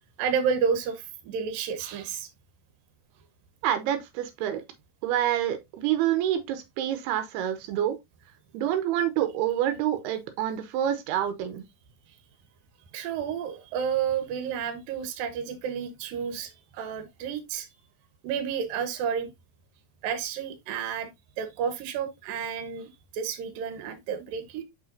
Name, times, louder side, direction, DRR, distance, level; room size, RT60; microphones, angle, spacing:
voice 1, 0.2-2.3 12.9-17.7 18.2-19.3 20.0-21.1 21.4-24.6, right 7 dB, 70° right, 2.7 m, -31 dB
voice 2, 3.6-4.6 5.0-8.0 8.5-11.6, right 11 dB, 90° right, 2.9 m, -27 dB
7.1 x 5.7 x 2.6 m
omnidirectional pair, 4.6 m